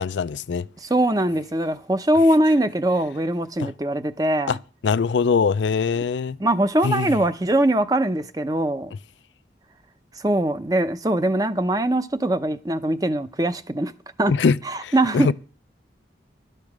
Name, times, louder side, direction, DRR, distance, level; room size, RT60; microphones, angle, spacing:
voice 1, 0.0-0.7 3.6-3.7 4.5-4.6 4.8-6.4 6.8-7.1 14.3-15.3, left 5 dB, 90° left, 0.4 m, -22 dB
voice 2, 0.8-4.6 6.4-8.9 10.2-13.9 14.2-14.3 14.6-15.3, right 1 dB, 20° right, 0.6 m, -22 dB
11.5 x 6.7 x 6.1 m
head